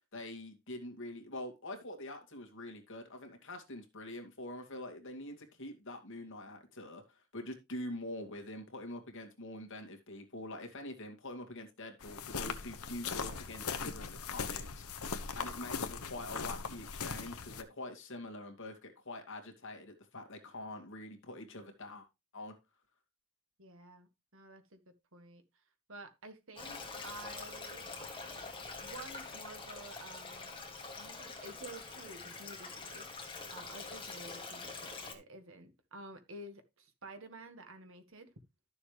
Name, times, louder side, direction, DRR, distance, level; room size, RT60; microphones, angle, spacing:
voice 1, 0.1-22.1 22.3-22.5, left 1 dB, 55° left, 2.3 m, -45 dB
sound 1, 12.0-17.6, left 5 dB, 75° left, 1.1 m, -39 dB
voice 2, 23.6-24.8 25.1-25.4 25.9-27.8 28.8-30.6 30.9-38.3, right 1 dB, 60° right, 1.8 m, -51 dB
Stream, 26.6-35.1, left 3 dB, 25° left, 2.3 m, -45 dB
12.5 x 7.0 x 3.3 m
head